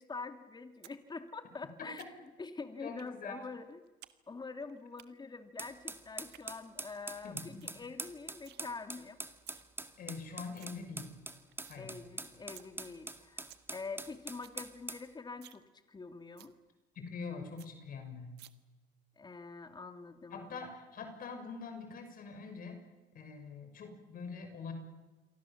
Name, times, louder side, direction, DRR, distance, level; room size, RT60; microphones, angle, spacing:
voice 1, 0.0-3.8 4.3-9.2 11.8-15.6 15.9-16.5 19.2-20.7, left 4 dB, 25° left, 8 dB, 2.7 m, -45 dB
sound 1, 0.8-1.0 1.3-2.4 3.0-3.1 3.5-4.2 4.4-5.1 6.1-6.4 6.9-7.0 7.3-7.4 7.6-7.8 8.1-8.6 9.2-9.6 10.1-10.2 10.3-10.7 11.1-11.8 12.2-12.3 12.6-12.7 13.1-13.2 13.3-13.7 14.0-14.1 14.3-14.6 14.9-15.0 15.3-15.6 15.9-16.0 16.4-16.5 16.9-17.0 17.3-17.4 17.6-17.7 18.4-18.5, right 15 dB, 75° right, 1.5 m, -56 dB
voice 2, 2.8-3.4 7.2-7.7 10.0-11.1 11.7-12.0 16.9-18.4 20.3-22.8 23.1-24.7, left 5 dB, 55° left, 6 dB, 6.1 m, -44 dB
sound 2, 5.6-15.1, right 2 dB, 15° right, 2.1 m, -44 dB
28.5 x 23.5 x 7.4 m, 1.2 s
cardioid pair, 95°, 17 cm